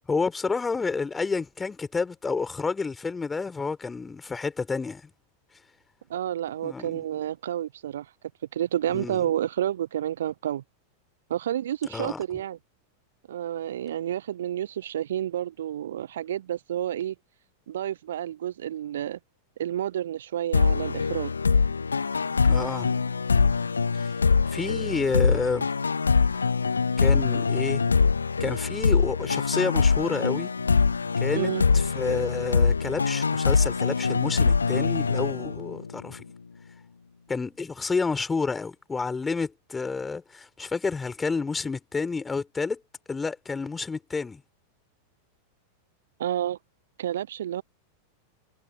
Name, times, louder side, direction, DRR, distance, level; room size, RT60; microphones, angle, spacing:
voice 1, 0.1-5.1 6.6-7.0 8.9-9.2 11.9-12.2 22.4-22.9 24.0-24.1 24.5-25.7 27.0-27.8 28.4-30.5 31.2-36.2 37.3-42.8 43.1-44.4, left 4 dB, 15° left, 4.0 m, -30 dB
voice 2, 6.1-8.1 8.5-10.6 11.3-12.6 13.3-17.1 17.7-19.2 19.6-21.3 31.3-31.7 46.2-46.6 47.0-47.6, right 11 dB, 60° right, 1.0 m, -30 dB
sound 1, 20.5-36.0, left 5 dB, 75° left, 1.6 m, -23 dB
figure-of-eight pair, 90°, 0 cm